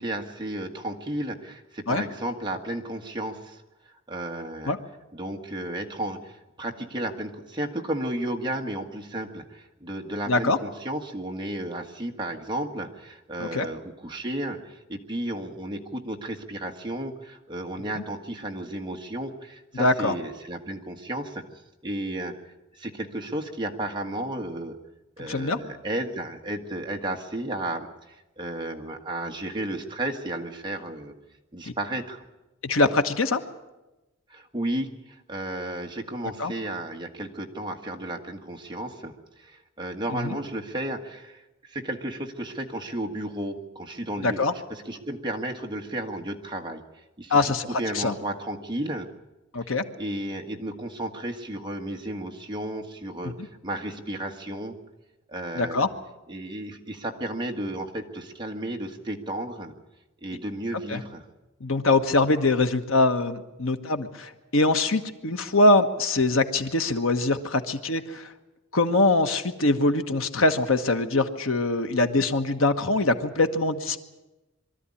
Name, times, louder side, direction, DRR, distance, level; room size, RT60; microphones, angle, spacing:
voice 1, 0.0-3.6 4.1-4.7 5.1-21.4 21.8-22.4 22.7-24.8 25.2-31.1 31.5-32.2 34.3-46.8 47.2-49.1 50.0-54.8 55.3-55.9 56.3-59.7 60.2-61.2, right 1 dB, 20° right, 2 dB, 1.6 m, -33 dB
voice 2, 10.3-10.6 13.4-13.7 17.9-18.0 19.8-20.1 25.3-25.6 31.7-31.8 32.6-33.4 36.4-36.5 40.1-40.4 44.2-44.5 47.3-47.6 47.9-48.1 49.5-49.8 53.2-53.3 55.5-55.9 60.9-61.0 61.6-68.3 68.7-74.0, left 2 dB, 80° left, 8 dB, 1.3 m, -23 dB
23.5 x 13.0 x 9.9 m, 1.0 s
head